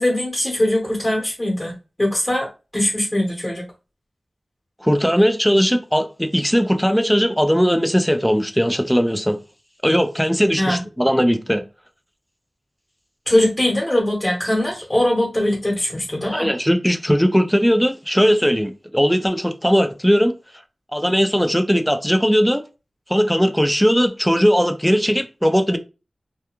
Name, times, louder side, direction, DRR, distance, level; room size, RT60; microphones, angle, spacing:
voice 1, 0.0-3.7 10.6-10.8 13.3-16.5, left 1 dB, 20° left, 1.0 m, -21 dB
voice 2, 4.8-9.4 9.8-11.6 16.3-20.3 20.9-22.6 23.1-25.8, equal, ahead, 0.4 m, -18 dB
2.3 x 2.3 x 2.9 m
wide cardioid pair, 75°, 0 cm